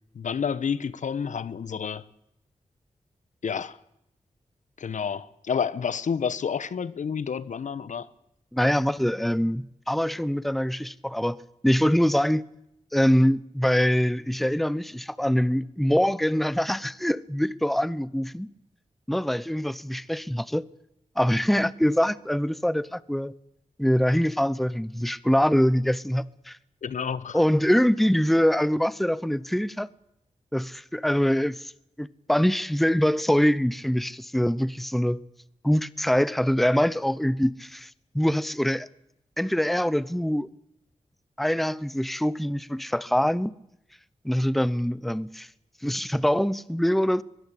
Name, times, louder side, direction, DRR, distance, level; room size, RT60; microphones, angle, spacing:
voice 1, 0.1-2.0 3.4-3.8 4.8-8.1 26.8-27.4, left 6 dB, 80° left, 1.1 m, -29 dB
voice 2, 8.5-12.4 12.9-18.5 19.1-20.7 21.2-23.3 23.8-26.6 27.3-29.9 30.5-31.7 32.0-35.2 35.6-37.9 38.1-38.9 39.4-40.5 41.4-43.5 44.2-45.5 45.8-47.2, equal, ahead, 0.8 m, -24 dB
22.5 x 21.0 x 8.5 m
wide cardioid pair, 85°, 13 cm